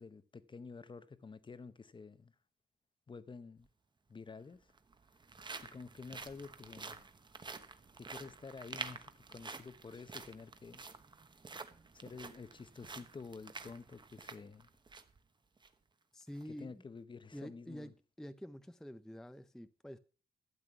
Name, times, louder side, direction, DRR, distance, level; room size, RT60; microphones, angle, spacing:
voice 1, 0.0-2.3 3.1-3.7 4.1-4.7 5.7-7.0 8.0-10.8 11.9-14.7 16.5-17.9, left 4 dB, 30° left, 0.8 m, -50 dB
sound 1, 3.6-3.7 4.6-15.2 15.6-15.7 16.2-16.4, right 4 dB, 25° right, 1.0 m, -49 dB
voice 2, 16.1-16.8 17.3-20.0, equal, 5° left, 0.5 m, -48 dB
12.5 x 8.5 x 5.9 m
wide cardioid pair, 150°, 17 cm